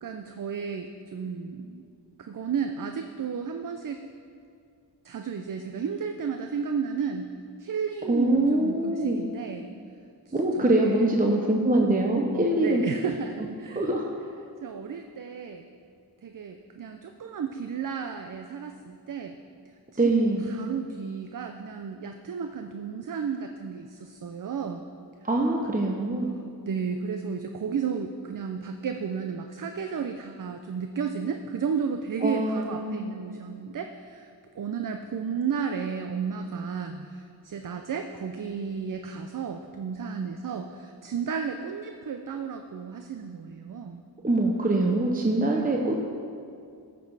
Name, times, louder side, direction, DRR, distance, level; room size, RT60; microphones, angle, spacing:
voice 1, 0.0-1.8 2.2-4.0 5.0-9.7 10.3-11.1 12.3-14.3 14.6-15.7 16.2-19.4 20.0-20.1 20.4-24.8 26.6-44.0, right 6 dB, 50° right, 6 dB, 0.5 m, -33 dB
voice 2, 8.1-9.2 10.3-12.8 13.7-14.0 20.0-20.5 25.2-26.3 32.2-33.0 44.2-46.0, right 2 dB, 20° right, 1 dB, 0.8 m, -24 dB
14.0 x 6.1 x 4.8 m, 2.4 s
wide cardioid pair, 80°, 42 cm